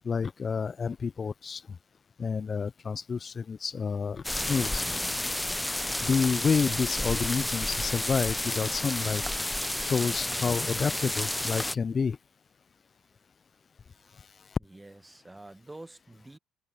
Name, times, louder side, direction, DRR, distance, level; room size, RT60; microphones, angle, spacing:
voice 1, 0.1-1.6 2.2-4.8 6.0-9.2 9.8-12.2, left 5 dB, 40° left, 0.4 m, -29 dB
sound 1, 4.2-11.7, left 1 dB, 10° left, 0.7 m, -31 dB
voice 2, 14.6-16.4, right 2 dB, 15° right, 1.5 m, -48 dB
hypercardioid pair, 50°, 0 cm